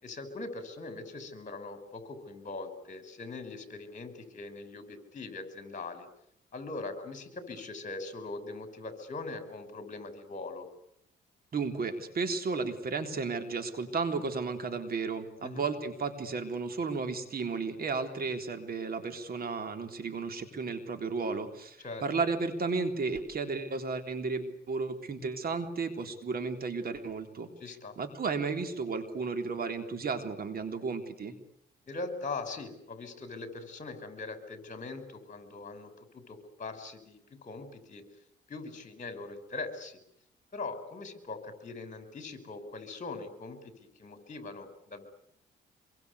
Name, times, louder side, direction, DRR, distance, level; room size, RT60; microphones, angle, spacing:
voice 1, 0.0-6.1 6.5-10.7 15.4-15.7 21.8-22.0 27.6-28.0 31.9-38.0 38.5-40.0 40.5-45.1, left 3 dB, 40° left, 9 dB, 5.7 m, -41 dB
voice 2, 11.5-27.5 28.0-31.3, right 4 dB, 50° right, 7 dB, 3.8 m, -33 dB
26.0 x 23.0 x 8.4 m, 0.74 s
cardioid pair, 90°, 20 cm